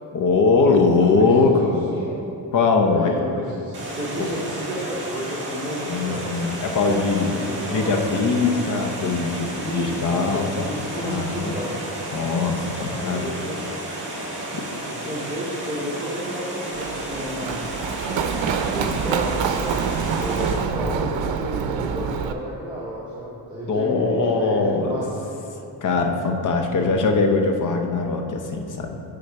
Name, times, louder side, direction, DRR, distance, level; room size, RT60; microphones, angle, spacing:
voice 1, 0.1-1.8 2.5-3.1 4.2-4.3 5.9-10.7 11.0-11.6 12.1-13.3 14.5-14.6 23.7-25.0 25.8-29.0, left 4 dB, 45° left, 4 dB, 0.7 m, -21 dB
voice 2, 1.0-1.3 1.6-2.3 2.8-6.3 7.2-7.9 9.5-11.8 12.9-13.6 14.8-17.6 18.5-19.5 20.1-25.4 26.7-27.1, equal, 10° right, -7 dB, 0.8 m, -32 dB
Water, 3.7-20.5, right 1 dB, 25° right, 1.5 m, -32 dB
Run, 16.7-22.3, right 6 dB, 90° right, 0.5 m, -26 dB
8.3 x 3.9 x 4.5 m, 2.9 s
wide cardioid pair, 165°, 44 cm